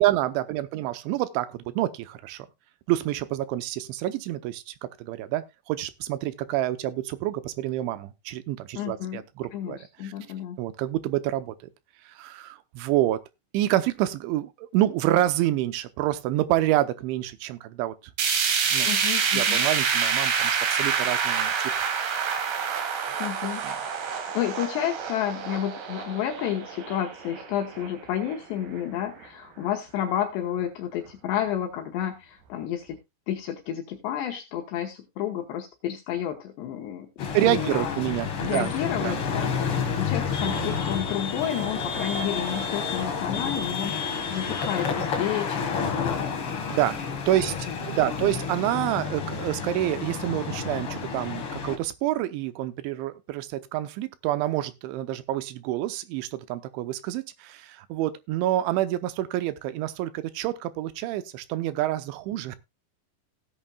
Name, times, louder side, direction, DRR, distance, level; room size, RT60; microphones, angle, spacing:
voice 1, 0.0-2.5 2.9-9.8 10.0-10.1 10.6-11.5 12.2-13.2 13.5-17.9 18.7-18.9 19.3-21.7 23.6-23.8 37.3-39.2 46.7-47.0 47.3-62.6, right 14 dB, 90° right, 3.2 m, -27 dB
voice 2, 8.8-9.2 9.5-10.6 18.8-19.6 23.2-23.6 24.1-33.0 33.3-38.0 38.4-46.3 47.3-47.8 48.0-48.4, left 10 dB, 75° left, 3.1 m, -31 dB
sound 1, 18.2-28.3 28.7-28.8 29.2-29.3 30.2-30.3, right 6 dB, 65° right, 4.1 m, -27 dB
sound 2, 37.2-51.8, left 6 dB, 50° left, 1.7 m, -30 dB
16.5 x 8.9 x 2.3 m
omnidirectional pair, 5.3 m